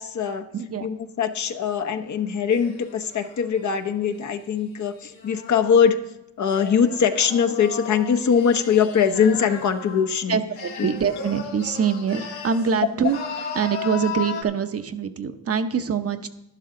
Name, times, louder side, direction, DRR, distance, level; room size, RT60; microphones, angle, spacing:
voice 1, 0.0-0.4 0.8-6.0 6.4-10.4, left 7 dB, 50° left, 8 dB, 1.0 m, -22 dB
voice 2, 0.5-0.9 10.3-16.3, right 6 dB, 40° right, 8 dB, 0.9 m, -24 dB
sound 1, 2.5-5.9 6.5-10.2 10.6-12.7 13.0-14.4, left 6 dB, 80° left, 2.3 m, -36 dB
11.5 x 11.0 x 3.8 m, 0.85 s
cardioid pair, 80°, 38 cm